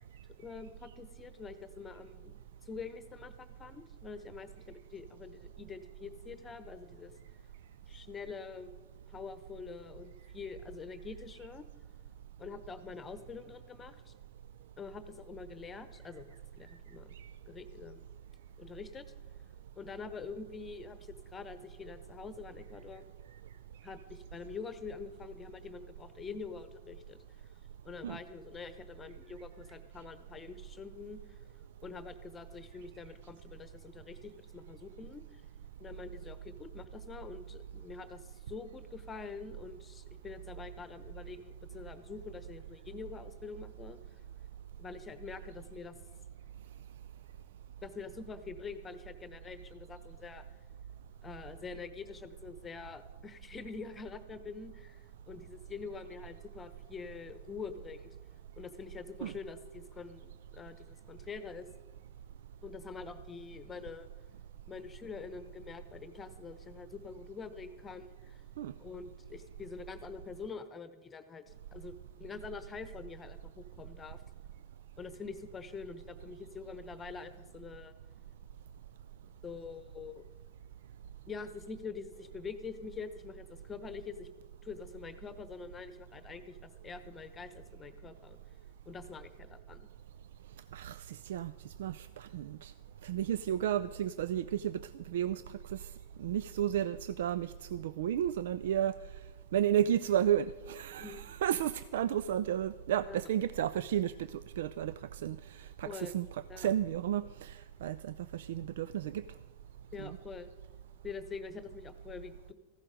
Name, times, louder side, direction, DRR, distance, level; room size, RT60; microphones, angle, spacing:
voice 1, 0.4-2.4 2.6-7.1 7.9-8.7 9.1-11.7 12.4-14.1 14.8-16.3 16.5-17.1 17.5-18.1 18.6-19.1 19.8-23.1 23.8-27.2 27.8-31.4 31.8-35.4 35.8-44.0 44.8-45.9 47.8-50.4 51.2-58.2 58.6-61.7 62.6-64.1 64.7-68.4 68.8-74.2 75.0-77.9 79.4-80.2 81.3-84.3 84.6-88.4 88.9-89.9 101.0-101.3 105.8-106.2 106.5-106.7 109.9-110.5 111.0-112.5, left 5 dB, 20° left, 11 dB, 1.0 m, -45 dB
voice 2, 90.7-92.7 93.0-95.9 96.2-99.0 99.5-109.2 110.0-110.2, right 10 dB, 70° right, 16 dB, 0.3 m, -33 dB
14.5 x 11.5 x 5.1 m, 1.2 s
hypercardioid pair, 100°, 0 cm